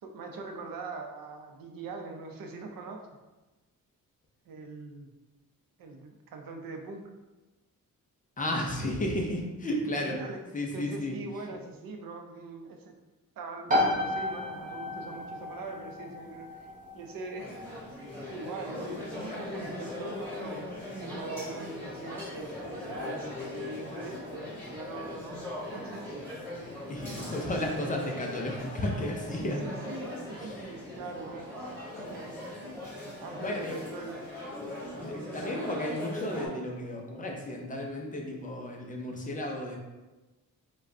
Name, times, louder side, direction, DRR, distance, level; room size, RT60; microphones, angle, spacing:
voice 1, 0.0-3.0 4.5-5.1 5.8-7.1 9.7-10.4 10.7-13.0 13.4-17.5 18.3-20.2 21.0-26.3 27.6-27.7 29.4-31.5 32.0-32.5 33.2-34.2, right 3 dB, 75° right, 4 dB, 0.6 m, -42 dB
voice 2, 8.4-10.2 10.5-11.2 26.9-29.6 33.4-33.8 35.0-39.8, left 1 dB, 25° left, 0 dB, 0.4 m, -33 dB
sound 1, 13.7-28.2, left 1 dB, 25° right, 0.6 m, -37 dB
sound 2, 17.4-36.5, left 1 dB, 5° left, 1.4 m, -40 dB
4.8 x 2.2 x 2.6 m, 1.1 s
wide cardioid pair, 180°, 34 cm